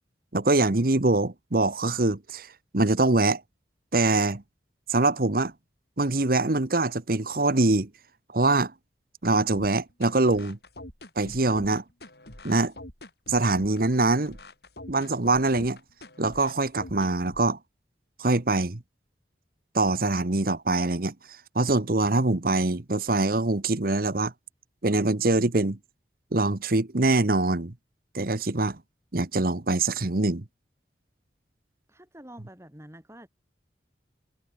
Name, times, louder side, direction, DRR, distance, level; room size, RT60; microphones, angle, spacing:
voice 1, 0.3-3.4 3.9-4.4 4.9-5.5 6.0-7.9 8.3-8.7 9.2-10.6 11.2-11.8 12.4-12.7 13.3-14.4 14.9-15.8 16.2-17.6 18.2-18.8 19.7-21.1 21.5-24.3 24.8-25.8 26.3-27.7 28.1-28.8 29.1-30.4, right 2 dB, 55° right, 1.3 m, -24 dB
sound 1, 9.5-17.5, left 1 dB, 65° left, 7.4 m, -45 dB
voice 2, 31.9-33.3, right 1 dB, 15° right, 7.3 m, -47 dB
head